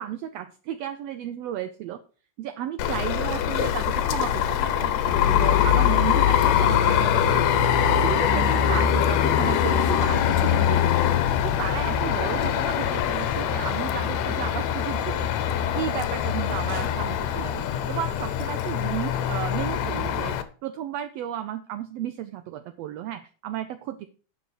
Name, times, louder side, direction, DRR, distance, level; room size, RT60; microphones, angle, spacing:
voice 1, 0.0-2.0 2.4-4.9 5.3-7.7 8.0-10.8 11.4-15.3 15.7-20.4 20.6-24.1, right 11 dB, 80° right, 9 dB, 1.5 m, -33 dB
sound 1, 2.8-20.4, left 9 dB, 70° left, 1.9 m, -23 dB
8.4 x 5.9 x 6.3 m, 0.39 s
omnidirectional pair, 3.6 m